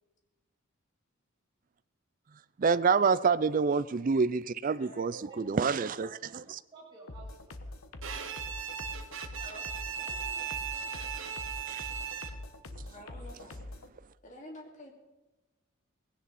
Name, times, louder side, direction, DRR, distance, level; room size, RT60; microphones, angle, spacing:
voice 1, 2.6-6.6 11.7-11.9, right 5 dB, 40° right, 15 dB, 0.4 m, -27 dB
voice 2, 4.8-5.3 9.4-9.6 12.9-13.7 14.2-14.9, equal, 35° left, 0 dB, 2.9 m, -48 dB
voice 3, 6.7-7.7 10.0-11.6, right 3 dB, 20° right, -7 dB, 6.8 m, -55 dB
sound 1, 7.1-13.9, left 2 dB, 85° left, 1.2 m, -44 dB
Bowed string instrument, 8.0-12.6, right 8 dB, 65° right, 1.2 m, -38 dB
18.0 x 16.5 x 4.2 m, 1.1 s
head